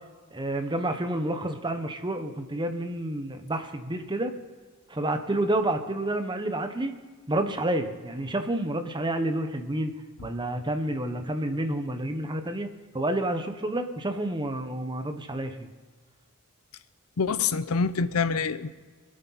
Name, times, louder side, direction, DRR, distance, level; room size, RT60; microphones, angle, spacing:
voice 1, 0.3-4.3 4.9-6.9 7.3-9.9 10.2-12.7 12.9-15.7, right 1 dB, 20° right, 1.0 m, -29 dB
voice 2, 17.2-18.7, left 5 dB, 80° left, 0.6 m, -26 dB
24.5 x 8.8 x 4.1 m
head